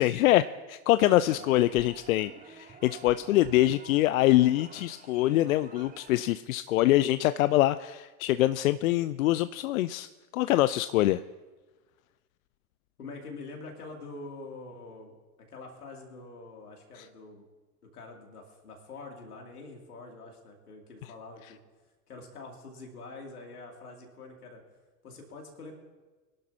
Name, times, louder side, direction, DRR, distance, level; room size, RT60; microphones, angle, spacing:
voice 1, 0.0-11.2 17.0-17.1, left 15 dB, 65° left, 14 dB, 0.5 m, -24 dB
voice 2, 1.0-1.5 13.0-15.1 15.5-17.4 17.9-21.6 22.1-24.6 25.0-25.7, left 3 dB, 80° left, 1 dB, 2.9 m, -45 dB
sound 1, 1.0-6.3, right 5 dB, 20° right, 1.2 m, -50 dB
24.5 x 11.5 x 2.9 m, 1.3 s
figure-of-eight pair, 85°, 45 cm